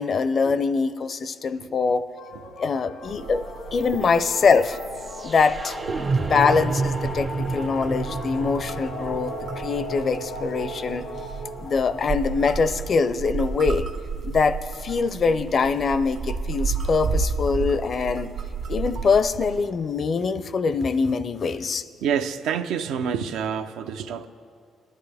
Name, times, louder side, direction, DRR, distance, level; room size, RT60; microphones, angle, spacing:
voice 1, 0.0-2.1 2.6-3.4 3.7-4.8 5.2-5.8 6.2-11.1 11.6-13.9 14.2-18.3 18.7-21.8, left 5 dB, 50° left, 0.5 m, -23 dB
sound 1, 2.1-14.0, left 1 dB, 90° left, 1.2 m, -37 dB
sound 2, 3.1-19.7, right 5 dB, 60° right, 1.3 m, -33 dB
sound 3, 3.8-13.8, right 4 dB, 30° right, 0.4 m, -32 dB
voice 2, 22.0-24.3, right 7 dB, 90° right, 0.5 m, -28 dB
19.0 x 11.5 x 3.4 m
cardioid pair, 90°, 0 cm